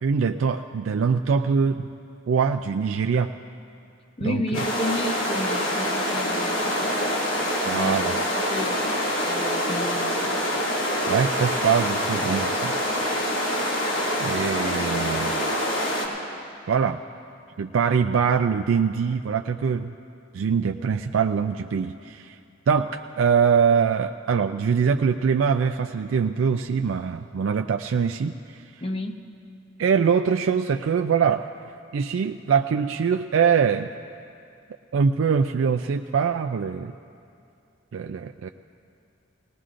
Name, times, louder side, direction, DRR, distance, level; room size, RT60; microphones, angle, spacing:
voice 1, 0.0-1.9 2.3-3.3 4.2-4.4 7.7-8.2 11.1-12.7 14.2-15.4 16.7-17.0 17.6-19.9 20.3-22.4 22.7-28.6 29.8-31.4 31.9-33.9 34.9-36.9 37.9-38.5, right 6 dB, 75° right, 7 dB, 0.3 m, -23 dB
voice 2, 4.2-7.0 7.7-10.5 28.8-29.2, left 1 dB, 30° left, 5 dB, 0.7 m, -32 dB
sound 1, 4.5-16.1, equal, 90° left, 2.3 m, -25 dB
19.5 x 19.5 x 2.5 m, 2.5 s
head